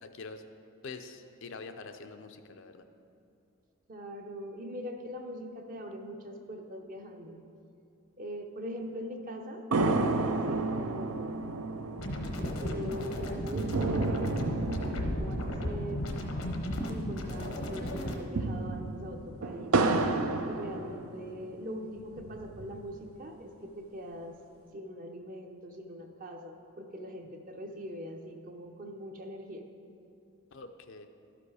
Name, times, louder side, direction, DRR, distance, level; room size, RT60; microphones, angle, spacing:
voice 1, 0.0-0.4 0.8-2.8 30.5-31.1, left 4 dB, 60° left, 7 dB, 0.5 m, -45 dB
voice 2, 3.9-7.4 8.2-11.3 12.6-14.7 15.0-16.0 16.9-19.7 20.4-24.4 24.7-29.6, equal, 40° right, 3 dB, 0.7 m, -42 dB
sound 1, 9.7-17.3 17.6-17.7 18.1-21.5 22.0-23.0, right 3 dB, 75° right, 0.5 m, -32 dB
sound 2, 12.0-18.2, left 1 dB, 75° left, 0.9 m, -35 dB
12.5 x 5.1 x 4.8 m, 2.7 s
head